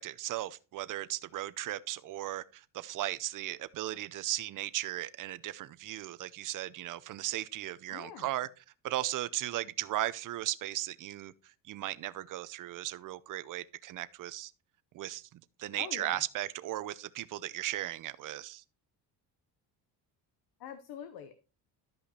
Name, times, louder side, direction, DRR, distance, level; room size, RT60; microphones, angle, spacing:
voice 1, 0.0-14.5 14.9-18.6, right 14 dB, 50° right, 0.7 m, -37 dB
voice 2, 7.9-8.3 15.8-16.2 20.6-21.4, left 8 dB, 60° left, 1.0 m, -44 dB
12.0 x 5.5 x 4.2 m
cardioid pair, 140°, 42 cm